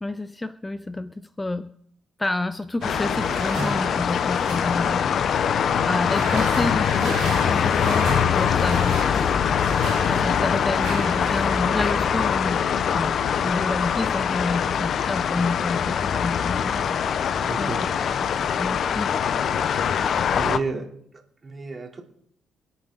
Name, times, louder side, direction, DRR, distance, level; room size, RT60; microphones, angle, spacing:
voice 1, 0.0-1.7 2.2-5.1 5.5-9.4 10.1-12.6 12.9-13.2 13.4-17.0 17.6-17.7 18.2-18.3 18.6-19.1, left 2 dB, 15° left, 13 dB, 0.5 m, -29 dB
sound 1, 2.8-20.6, left 7 dB, 60° left, 0.6 m, -23 dB
sound 2, 2.8-11.9, right 5 dB, 85° right, 3.2 m, -35 dB
voice 2, 17.4-17.8 20.3-20.9 21.4-22.0, right 4 dB, 30° right, 1 dB, 3.2 m, -30 dB
26.0 x 8.9 x 3.9 m, 0.68 s
cardioid pair, 90°, 0 cm